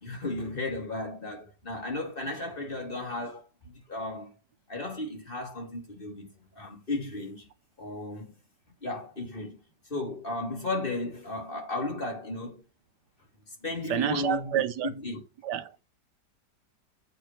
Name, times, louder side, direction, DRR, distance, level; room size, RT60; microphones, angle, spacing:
voice 1, 0.0-4.3 4.7-7.5 7.8-8.3 8.8-9.6 9.9-12.6 13.5-14.5 14.8-15.2, left 2 dB, 30° left, 3.1 m, -35 dB
voice 2, 13.9-14.9 15.4-15.7, right 10 dB, 70° right, 1.4 m, -28 dB
8.1 x 5.5 x 5.8 m
omnidirectional pair, 2.0 m